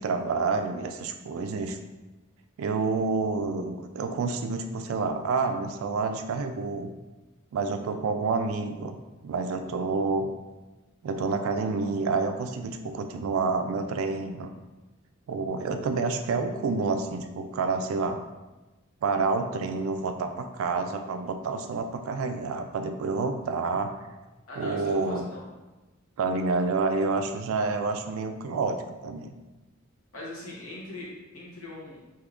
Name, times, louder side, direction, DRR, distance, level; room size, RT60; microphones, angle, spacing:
voice 1, 0.0-1.8 2.6-6.9 7.5-9.0 9.2-10.3 11.0-14.5 15.3-18.2 19.0-23.9 24.6-25.2 26.2-29.3, right 4 dB, 70° right, 6 dB, 0.3 m, -28 dB
voice 2, 24.5-25.5 30.1-32.0, left 2 dB, 75° left, -5 dB, 1.1 m, -41 dB
3.5 x 2.8 x 2.4 m, 1.1 s
head